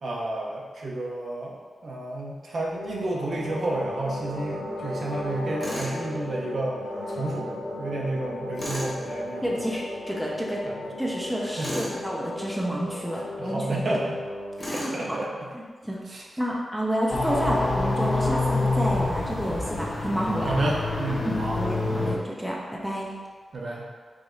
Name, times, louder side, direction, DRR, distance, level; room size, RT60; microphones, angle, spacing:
voice 1, 0.0-1.6 1.8-6.8 7.1-9.5 10.6-10.8 11.6-11.9 13.4-14.2 14.7-15.5 16.1-16.3 20.4-22.1 23.5-23.9, right 2 dB, 55° right, -2 dB, 0.7 m, -31 dB
sound 1, 2.7-14.9, left 1 dB, 85° left, 1.2 m, -36 dB
Tools, 5.6-6.0 8.6-8.9 11.6-12.0 14.6-15.0, left 1 dB, 20° left, 1.4 m, -33 dB
voice 2, 9.4-10.6 11.0-13.8 14.6-15.2 15.8-20.5 21.2-23.1, equal, 5° right, -3 dB, 0.6 m, -30 dB
sound 2, 17.1-22.2, left 2 dB, 50° left, 0.7 m, -27 dB
4.9 x 2.6 x 3.8 m, 1.5 s
wide cardioid pair, 140°, 0 cm